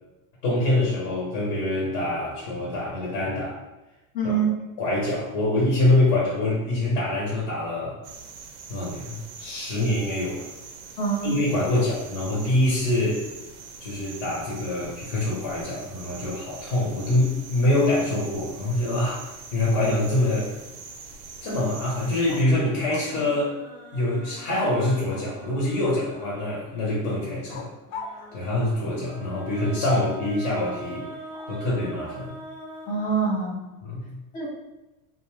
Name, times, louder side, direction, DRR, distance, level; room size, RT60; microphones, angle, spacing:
voice 1, 0.4-3.6 4.2-4.3 4.8-8.0 8.7-10.5 11.2-13.2 13.8-19.2 19.5-20.5 21.4-23.5 23.9-27.7 28.3-31.0 31.5-32.4 33.8-34.2, left 1 dB, 45° left, -5 dB, 1.0 m, -25 dB
voice 2, 4.1-4.6 11.0-11.3 29.9-30.0 32.9-33.6 34.3-34.5, right 4 dB, 20° left, -1 dB, 0.5 m, -25 dB
sound 1, 8.0-22.4, right 5 dB, 60° right, 0.5 m, -43 dB
dog barking inside a room, 22.2-23.2 25.1-25.7 27.5-29.0 30.6-31.8, left 4 dB, 75° left, 0.5 m, -43 dB
sound 2, 22.7-26.8 27.9-33.7, right 1 dB, 5° left, 1.0 m, -43 dB
2.4 x 2.3 x 3.0 m, 1.0 s
supercardioid pair, 140°, 42 cm